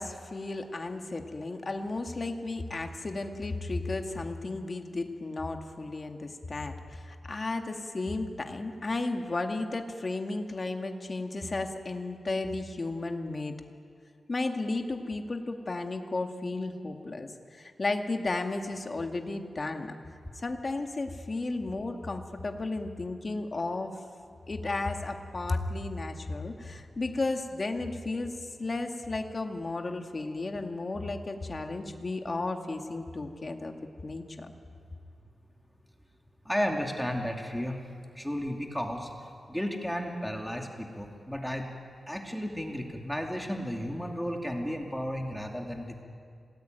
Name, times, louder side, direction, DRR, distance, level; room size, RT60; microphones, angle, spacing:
voice 1, 0.0-13.6 14.3-19.9 20.3-24.0 24.5-33.7 34.0-34.5, left 2 dB, 40° left, 4 dB, 2.1 m, -34 dB
voice 2, 36.4-37.8 38.1-39.1 39.5-41.7 42.1-46.0, equal, 5° left, 2 dB, 2.6 m, -33 dB
27.0 x 19.5 x 9.2 m, 2.3 s
wide cardioid pair, 100°, 0 cm